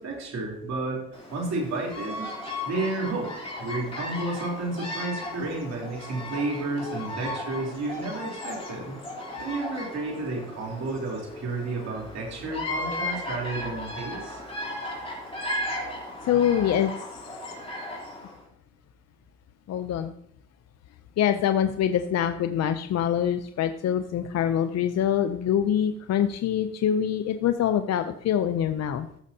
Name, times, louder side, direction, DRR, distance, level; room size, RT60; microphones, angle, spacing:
voice 1, 0.0-2.3 2.6-3.3 3.6-9.0 9.4-14.4, right 2 dB, 60° right, -2 dB, 3.4 m, -31 dB
Bird vocalization bird call bird song, 1.1-18.4, left 1 dB, 20° left, 3.2 m, -36 dB
voice 2, 16.2-16.9 19.7-20.1 21.2-29.1, left 9 dB, 60° left, 9 dB, 0.6 m, -25 dB
14.0 x 6.3 x 2.8 m, 0.70 s
cardioid pair, 90°, 30 cm